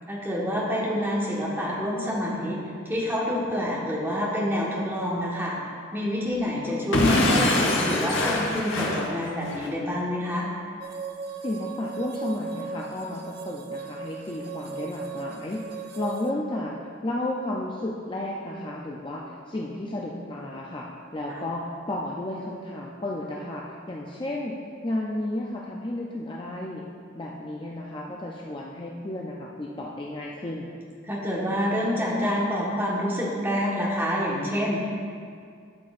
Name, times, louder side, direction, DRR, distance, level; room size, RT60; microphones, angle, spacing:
voice 1, 0.1-2.6 2.8-5.5 5.9-10.5 21.3-21.4 31.0-34.9, equal, 10° right, -6 dB, 1.4 m, -27 dB
Explosion / Shatter, 6.9-9.7, left 2 dB, 70° left, 1.0 m, -23 dB
sound 1, 10.8-16.3, right 5 dB, 50° right, 0.5 m, -37 dB
voice 2, 11.4-16.7 17.0-20.9 21.1-24.6 24.8-26.8 27.2-30.7, left 1 dB, 25° left, -3 dB, 0.4 m, -33 dB
12.5 x 6.0 x 2.5 m, 2.2 s
head